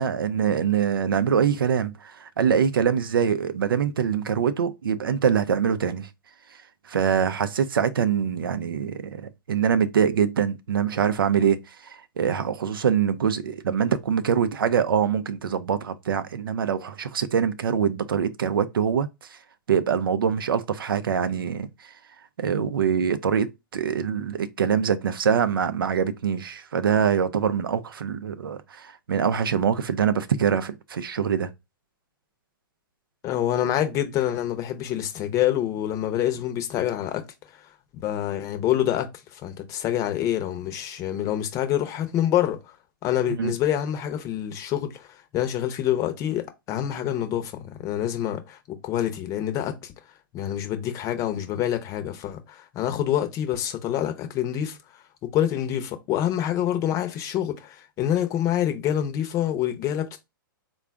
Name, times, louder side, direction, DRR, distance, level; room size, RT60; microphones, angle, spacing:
voice 1, 0.0-6.1 6.9-19.1 19.7-21.7 22.4-31.5 43.3-43.5, right 7 dB, 75° right, 0.5 m, -24 dB
voice 2, 33.2-37.2 37.9-39.1 39.3-42.6 43.0-45.1 45.3-47.5 47.8-49.9 50.3-54.8 55.2-60.2, left 11 dB, 30° left, 0.7 m, -26 dB
3.8 x 2.3 x 3.5 m
hypercardioid pair, 120°, 12 cm